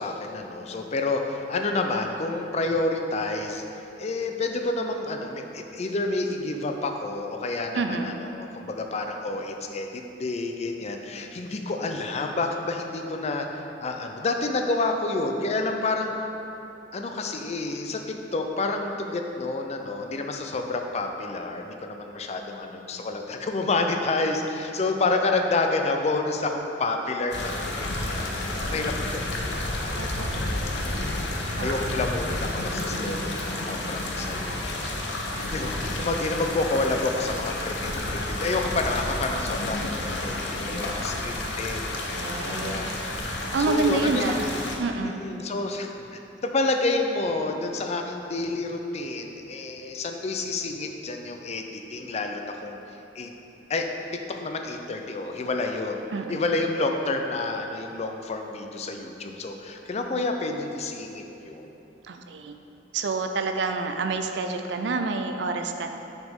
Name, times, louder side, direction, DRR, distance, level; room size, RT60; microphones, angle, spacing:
voice 1, 0.0-3.6 4.0-16.1 16.9-28.3 28.6-30.5 31.2-35.0 35.3-40.4 40.6-42.9 43.6-44.2 45.0-52.8 53.2-53.3 53.7-56.0 56.3-61.7, left 3 dB, 40° left, 4 dB, 0.4 m, -29 dB
voice 2, 7.8-8.2 29.9-30.8 31.6-32.0 35.9-36.0 42.2-42.9 43.5-44.5 44.8-45.2 56.1-56.4 62.0-62.5 62.9-65.9, right 3 dB, 80° right, 6 dB, 0.4 m, -28 dB
sound 1, 27.3-44.8, left 1 dB, 80° left, 0.7 m, -30 dB
6.1 x 5.2 x 3.6 m, 3.0 s
head